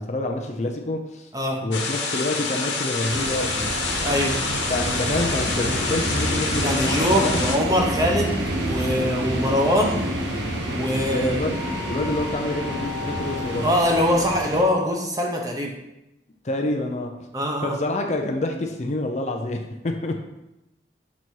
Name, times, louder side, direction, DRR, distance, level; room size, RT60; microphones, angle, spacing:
voice 1, 0.0-1.3 1.6-3.8 4.7-7.4 11.1-11.6 11.8-13.7 16.4-17.3 17.6-20.2, left 2 dB, 40° left, 3 dB, 0.5 m, -27 dB
sound 1, 1.7-7.6, left 4 dB, 85° left, 1.2 m, -27 dB
sound 2, 3.1-14.6, right 1 dB, 85° right, 1.0 m, -28 dB
voice 2, 4.0-4.3 6.6-10.0 10.7-11.3 13.6-15.7 17.3-17.7, equal, 20° right, 0 dB, 0.9 m, -23 dB
6.1 x 4.1 x 4.6 m, 0.91 s
head